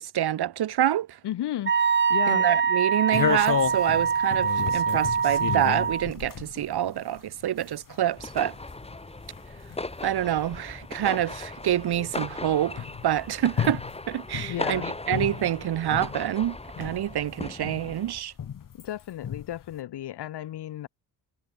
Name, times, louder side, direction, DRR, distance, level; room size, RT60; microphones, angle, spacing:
voice 1, 0.0-1.1 2.3-8.6 10.0-14.8 15.1-18.3, right 11 dB, 65° right, 2.5 m, -27 dB
voice 2, 1.2-1.7 2.1-2.4 14.5-14.9 18.7-20.9, left 12 dB, 70° left, 3.1 m, -33 dB
Wind instrument woodwind instrument, 1.7-6.1, right 6 dB, 25° right, 1.0 m, -24 dB
sound 1, 3.1-16.3 16.7-18.9 19.2-19.7, left 8 dB, 50° left, 3.1 m, -33 dB
sound 2, 8.2-18.2, left 2 dB, 15° left, 5.6 m, -38 dB
cardioid pair, 105°, 42 cm